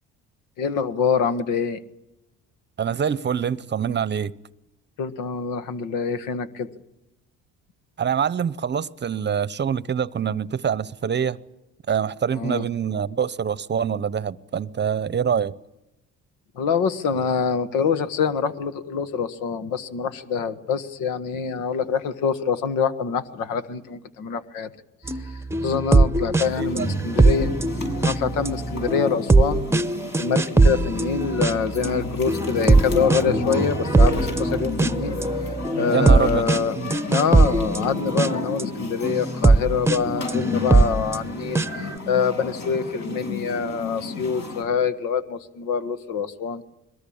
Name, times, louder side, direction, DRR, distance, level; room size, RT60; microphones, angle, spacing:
voice 1, 0.6-1.8 5.0-6.7 12.3-12.6 16.5-24.7 25.1-27.5 28.0-29.6 30.2-35.2 35.8-36.8 37.1-46.6, left 6 dB, 85° left, 1.5 m, -25 dB
voice 2, 2.8-4.3 8.0-11.4 11.9-15.5 26.7-26.9 35.9-36.4 36.8-36.9, right 7 dB, 35° right, 0.8 m, -25 dB
sound 1, 25.1-38.6 39.0-41.9, right 3 dB, 10° right, 0.9 m, -21 dB
sound 2, 26.4-44.6, left 3 dB, 60° left, 7.5 m, -32 dB
22.0 x 20.0 x 8.7 m
supercardioid pair, 85°, 32 cm